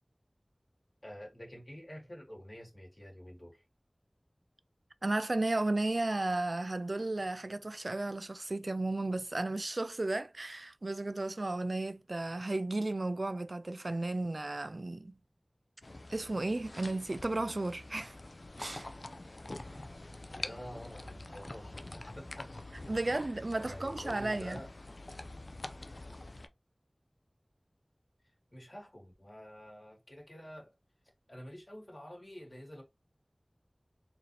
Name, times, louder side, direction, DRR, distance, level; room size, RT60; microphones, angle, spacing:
voice 1, 1.0-3.6 20.3-22.5 22.9-23.2 23.6-24.7 28.2-30.7 31.3-32.8, equal, 40° left, 2.1 m, -48 dB
voice 2, 5.0-15.2 16.1-18.2 18.6-18.9 22.9-24.6, right 2 dB, 70° right, 0.3 m, -34 dB
sound 1, 15.8-26.5, left 2 dB, 65° left, 0.4 m, -46 dB
4.0 x 2.7 x 3.2 m
wide cardioid pair, 40°, 0 cm